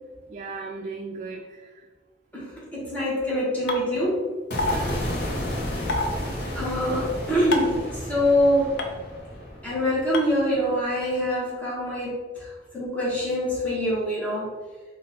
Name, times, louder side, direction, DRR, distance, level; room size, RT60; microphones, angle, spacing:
voice 1, 0.3-1.9 4.6-5.1, right 4 dB, 45° right, 2 dB, 0.3 m, -37 dB
voice 2, 2.3-4.2 6.5-8.8 9.6-12.2 12.7-14.5, equal, 10° left, -8 dB, 1.4 m, -24 dB
sound 1, 3.7-3.8 4.6-4.7 5.9-6.1 7.5-7.8 8.8-8.9 10.1-10.2, left 2 dB, 85° left, 0.6 m, -25 dB
sound 2, 4.5-10.7, left 1 dB, 65° left, 1.1 m, -32 dB
4.0 x 2.6 x 4.1 m, 1.3 s
head